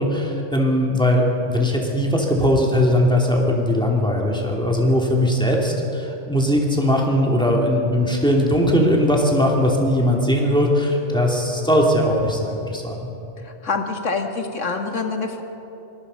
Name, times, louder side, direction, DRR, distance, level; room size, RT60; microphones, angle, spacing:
voice 1, 0.0-13.1, equal, 5° left, -1 dB, 2.9 m, -19 dB
voice 2, 13.6-15.4, left 4 dB, 80° left, 4 dB, 2.1 m, -25 dB
24.5 x 20.0 x 5.6 m, 2.9 s
omnidirectional pair, 1.3 m